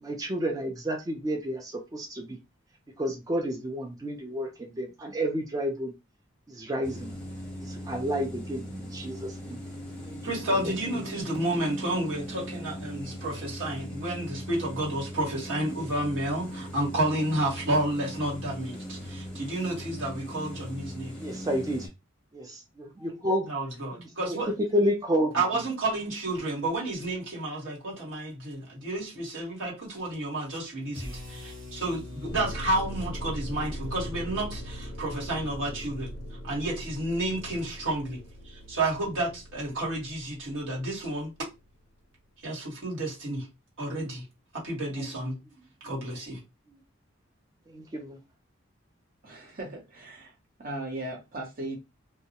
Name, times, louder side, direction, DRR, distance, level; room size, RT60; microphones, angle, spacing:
voice 1, 0.0-2.4 3.0-5.9 6.5-7.1 7.6-9.6 10.1-10.2 10.5-11.0 21.2-21.9 22.3-23.5 24.0-25.4 45.0-45.1 45.9-46.0 47.7-48.2, equal, 20° right, 0.3 m, -31 dB
sound 1, 6.8-21.9, equal, 5° left, 0.7 m, -39 dB
voice 2, 10.2-21.2 23.5-24.5 25.3-36.2 36.4-41.3 42.4-43.5 43.8-44.2 44.5-45.4 45.8-46.4, right 1 dB, 90° right, 1.3 m, -31 dB
sound 2, 30.9-37.1, left 2 dB, 70° right, 1.1 m, -44 dB
sound 3, 32.3-41.7, equal, 60° left, 0.4 m, -41 dB
voice 3, 49.2-50.3 50.6-51.8, right 1 dB, 45° right, 0.8 m, -37 dB
2.2 x 2.0 x 2.7 m
head